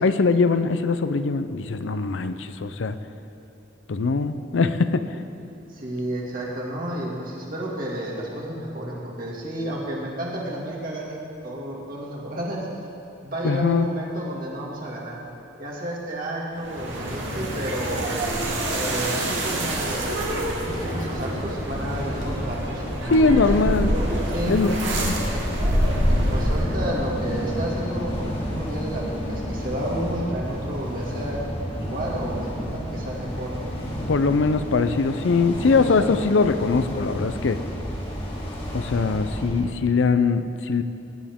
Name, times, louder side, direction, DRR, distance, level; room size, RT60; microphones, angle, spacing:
voice 1, 0.0-2.9 3.9-5.1 13.4-13.9 23.1-23.9 24.5-25.1 34.1-37.6 38.7-40.8, left 4 dB, 85° left, 11 dB, 0.5 m, -21 dB
voice 2, 5.7-12.6 13.2-15.2 15.6-18.1 18.7-23.7 24.3-24.6 26.1-31.4 31.8-33.6 35.8-36.1, right 1 dB, 50° right, -4 dB, 2.2 m, -31 dB
sound 1, 16.6-27.0, right 1 dB, 90° right, 2.2 m, -26 dB
sound 2, 20.6-39.7, equal, 30° left, 1.8 m, -31 dB
18.0 x 10.0 x 3.6 m, 2.8 s
head